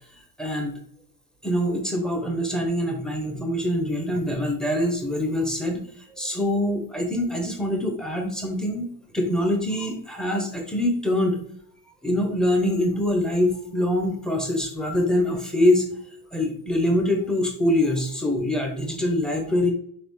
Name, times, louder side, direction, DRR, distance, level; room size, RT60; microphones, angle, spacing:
voice 1, 0.4-0.7 1.4-11.4 12.0-15.9 16.3-19.7, left 1 dB, ahead, 2 dB, 1.0 m, -24 dB
4.0 x 3.1 x 3.3 m, 0.63 s
cardioid pair, 105°, 37 cm